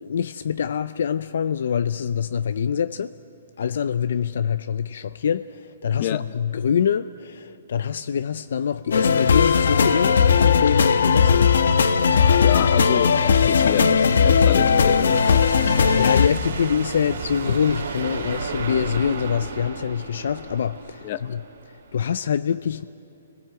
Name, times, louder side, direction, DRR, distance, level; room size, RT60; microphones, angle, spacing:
voice 1, 0.0-3.1 3.6-11.5 13.4-13.8 15.9-21.4 21.9-22.8, left 7 dB, 60° left, 0.5 m, -25 dB
sound 1, 8.9-16.3, left 6 dB, 75° left, 1.0 m, -17 dB
voice 2, 12.1-16.0 21.0-21.2, left 11 dB, 35° left, 0.9 m, -29 dB
sound 2, 13.5-22.0, right 4 dB, 75° right, 3.8 m, -34 dB
29.5 x 20.0 x 7.8 m
hypercardioid pair, 170°, 0 cm